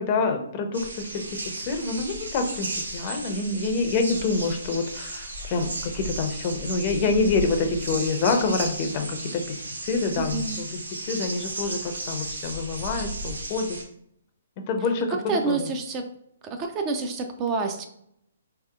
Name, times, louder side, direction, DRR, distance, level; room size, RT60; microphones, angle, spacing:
voice 1, 0.0-10.8 11.1-13.8 14.7-15.2 15.5-15.7, left 4 dB, 35° left, 5 dB, 0.5 m, -27 dB
sound 1, 0.7-13.8, right 2 dB, 90° right, 0.7 m, -35 dB
voice 2, 10.2-10.6 15.3-16.1 16.4-17.9, right 4 dB, 25° right, 5 dB, 0.4 m, -28 dB
3.2 x 2.8 x 2.3 m, 0.74 s
hypercardioid pair, 140°, 0 cm